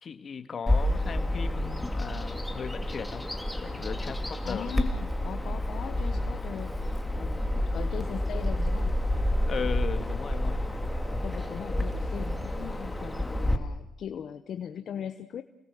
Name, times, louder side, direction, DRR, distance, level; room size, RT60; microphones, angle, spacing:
voice 1, 0.0-3.3 3.6-4.8 9.5-10.6, left 6 dB, 45° left, 9 dB, 2.4 m, -37 dB
Bird vocalization bird call bird song, 0.7-13.6, left 1 dB, 10° left, 2.8 m, -29 dB
voice 2, 4.4-8.9 11.2-15.4, left 8 dB, 65° left, 10 dB, 1.1 m, -39 dB
29.0 x 20.0 x 7.8 m, 0.87 s
cardioid pair, 90°, 0 cm